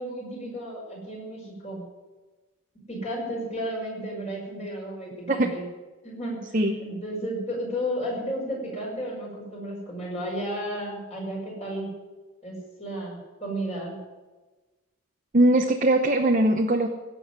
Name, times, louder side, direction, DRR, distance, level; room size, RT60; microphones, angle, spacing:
voice 1, 0.0-1.9 2.9-5.7 6.0-11.9 12.4-14.0, equal, 30° left, -3 dB, 5.9 m, -33 dB
voice 2, 15.3-16.9, right 1 dB, 35° right, 3 dB, 0.8 m, -20 dB
17.0 x 7.1 x 9.6 m, 1.2 s
head